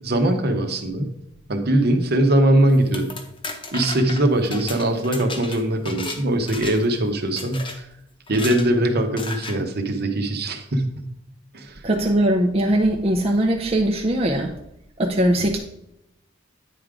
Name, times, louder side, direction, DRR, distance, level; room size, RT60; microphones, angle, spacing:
voice 1, 0.0-1.1 1.5-3.1 3.7-7.6 8.3-11.1 11.5-11.8, right 1 dB, 55° right, 6 dB, 1.0 m, -21 dB
sound 1, 2.7-6.2 6.5-7.0 7.4-7.8 8.3-8.7 9.2-9.6, left 3 dB, 25° left, 0.9 m, -34 dB
voice 2, 11.8-14.5 15.0-15.6, right 1 dB, 30° right, 0 dB, 0.6 m, -20 dB
9.3 x 3.7 x 4.8 m, 0.83 s
head